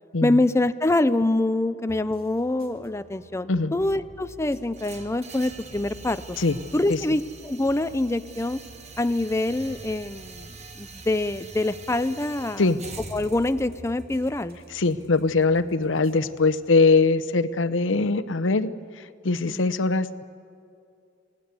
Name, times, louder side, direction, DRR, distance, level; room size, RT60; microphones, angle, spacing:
voice 1, 0.2-6.4 6.7-8.6 9.0-10.5 10.8-12.6 13.1-14.6 19.5-19.6, left 2 dB, 15° left, 12 dB, 0.5 m, -25 dB
sound 1, 1.9-17.1, right 1 dB, 55° right, 2.4 m, -49 dB
sound 2, 4.7-16.8, right 3 dB, 35° right, 1.7 m, -45 dB
voice 2, 14.7-18.7 19.0-20.2, left 3 dB, 90° left, 14 dB, 0.8 m, -22 dB
28.5 x 18.0 x 8.1 m, 2.5 s
head